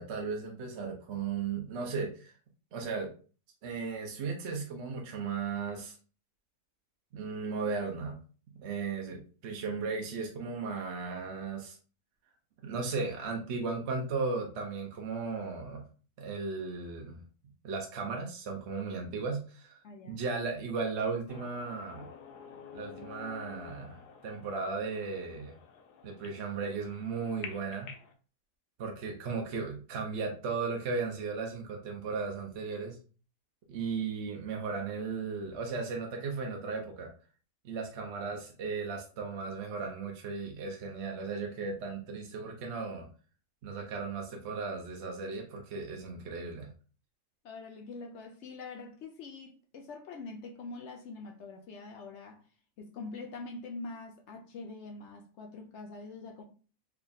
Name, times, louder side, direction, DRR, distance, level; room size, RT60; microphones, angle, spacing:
voice 1, 0.0-2.3 2.7-3.1 3.6-6.0 7.1-8.2 8.6-11.8 12.6-15.8 16.2-17.2 17.6-22.1 22.7-25.5 26.0-27.9 28.8-33.0 33.7-37.1 37.6-43.1 43.6-46.7, right 4 dB, 60° right, 0.7 m, -36 dB
voice 2, 19.8-20.2 47.4-52.4 52.8-56.4, left 3 dB, 65° left, 0.7 m, -44 dB
sound 1, 21.3-28.1, left 7 dB, 85° left, 1.2 m, -49 dB
3.4 x 2.2 x 3.9 m
omnidirectional pair, 1.7 m